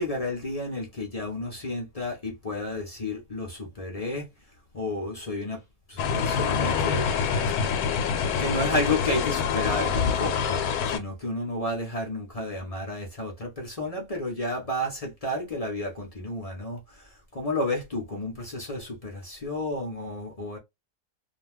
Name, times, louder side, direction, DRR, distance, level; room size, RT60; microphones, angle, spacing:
voice 1, 0.0-4.3 4.7-5.6 5.9-7.1 8.4-20.6, left 1 dB, 40° left, 0.5 m, -31 dB
sound 1, 6.0-11.0, left 6 dB, 80° left, 1.1 m, -26 dB
2.4 x 2.2 x 3.3 m
omnidirectional pair, 1.6 m